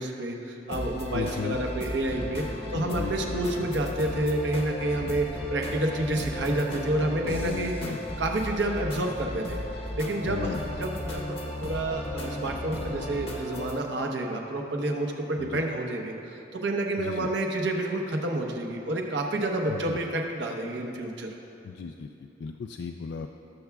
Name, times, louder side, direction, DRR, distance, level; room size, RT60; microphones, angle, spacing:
voice 1, 0.0-2.4 2.7-7.7 8.2-9.6 10.0-21.3, right 1 dB, 75° right, 2 dB, 1.0 m, -29 dB
sound 1, 0.7-13.8, left 1 dB, 30° left, 0.8 m, -35 dB
voice 2, 1.1-1.6 2.7-3.7 7.2-8.0 10.2-10.6 15.4-15.6 17.0-17.3 19.7-20.0 21.6-23.3, left 5 dB, 65° left, 4 dB, 0.3 m, -35 dB
18.5 x 6.8 x 2.4 m, 2.8 s
head